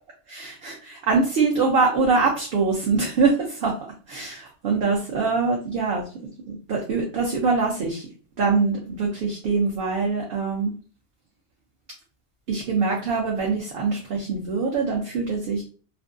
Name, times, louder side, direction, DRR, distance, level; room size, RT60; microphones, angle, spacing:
voice 1, 0.3-3.7 4.1-6.0 6.5-8.0 8.4-10.7 12.5-15.6, right 4 dB, 60° right, -2 dB, 0.7 m, -23 dB
2.5 x 2.2 x 2.4 m, 0.38 s
omnidirectional pair, 1.2 m